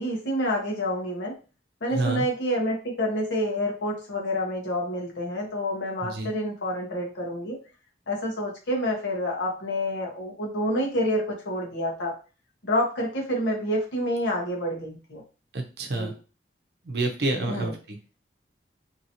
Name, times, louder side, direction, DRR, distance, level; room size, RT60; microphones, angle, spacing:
voice 1, 0.0-1.3 1.8-7.6 8.1-12.1 12.6-15.2 15.9-16.1 17.5-17.7, equal, 90° left, -1 dB, 1.1 m, -28 dB
voice 2, 1.9-2.3 6.0-6.3 15.5-16.1 16.8-18.0, right 2 dB, 65° right, 3 dB, 0.6 m, -28 dB
2.9 x 2.7 x 2.8 m, 0.34 s
head